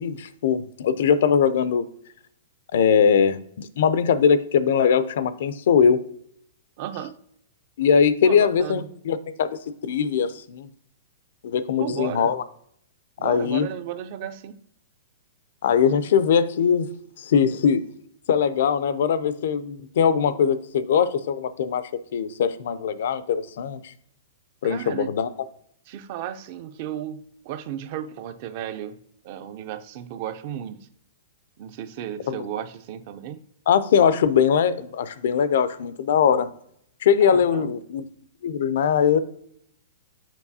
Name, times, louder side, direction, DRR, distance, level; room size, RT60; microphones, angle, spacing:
voice 1, 0.0-1.8 2.7-6.0 7.8-10.7 11.4-12.4 13.2-13.7 15.6-16.9 17.2-17.9 18.3-23.8 24.6-25.3 32.3-32.4 33.7-36.5 37.0-38.0 38.4-39.2, left 7 dB, 55° left, 14 dB, 0.4 m, -21 dB
voice 2, 6.8-7.2 8.2-8.9 11.8-12.3 13.2-14.6 24.6-25.1 25.9-29.0 29.2-30.8 31.6-33.4 37.2-37.7, right 10 dB, 35° right, 11 dB, 0.4 m, -34 dB
7.1 x 5.2 x 2.7 m, 0.70 s
hypercardioid pair, 175°, 0 cm